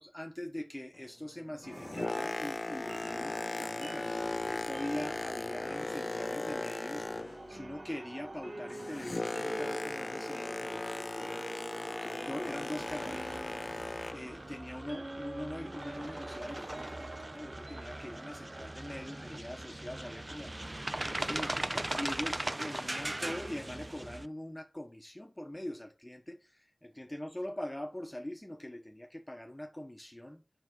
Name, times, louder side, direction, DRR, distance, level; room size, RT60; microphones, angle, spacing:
voice 1, 0.0-13.3 13.6-20.5 20.9-21.6 22.0-30.4, left 1 dB, 20° left, 1.1 m, -43 dB
Boat Water vehicle, 1.5-7.6 7.9-14.4 15.0-15.1, left 2 dB, 55° left, 0.4 m, -38 dB
sound 1, 1.6-19.3, right 2 dB, 55° right, 0.9 m, -46 dB
sound 2, 12.8-24.3, right 1 dB, 35° right, 0.6 m, -40 dB
7.1 x 5.9 x 4.7 m
wide cardioid pair, 45°, 0 cm